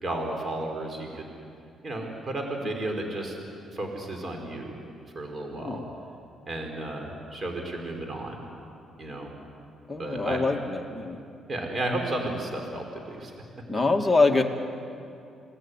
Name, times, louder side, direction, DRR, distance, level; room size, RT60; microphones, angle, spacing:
voice 1, 0.0-1.3 1.8-3.4 3.7-4.8 5.2-5.8 6.5-8.5 9.0-9.3 10.0-10.4 11.5-13.3, right 1 dB, 40° right, 2 dB, 5.2 m, -33 dB
voice 2, 5.5-5.8 9.9-11.2 13.7-14.4, left 3 dB, 10° left, 2 dB, 2.4 m, -24 dB
28.5 x 19.5 x 9.9 m, 2.6 s
cardioid pair, 90°, 0 cm